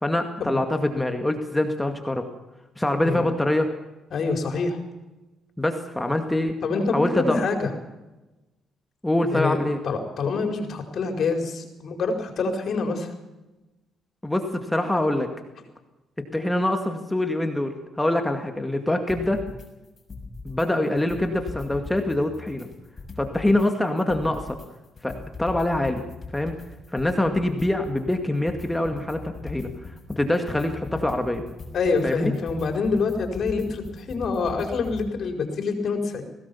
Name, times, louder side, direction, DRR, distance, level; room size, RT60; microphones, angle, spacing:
voice 1, 0.0-2.3 2.8-3.7 5.6-6.5 6.9-7.4 9.0-9.8 14.2-15.3 16.3-19.4 20.4-22.7 23.2-24.6 25.0-26.0 26.3-26.5 26.9-31.4 32.0-32.2, left 1 dB, 10° left, 5 dB, 2.2 m, -24 dB
voice 2, 4.1-4.8 6.6-7.7 9.3-9.6 9.8-13.1 31.7-36.2, left 4 dB, 60° left, 4 dB, 4.9 m, -26 dB
sound 1, 19.1-19.7 20.0-20.7 21.0-23.7 24.0-35.1, left 3 dB, 30° left, 6.6 m, -40 dB
21.0 x 18.0 x 7.2 m, 1.1 s
cardioid pair, 90°, 0 cm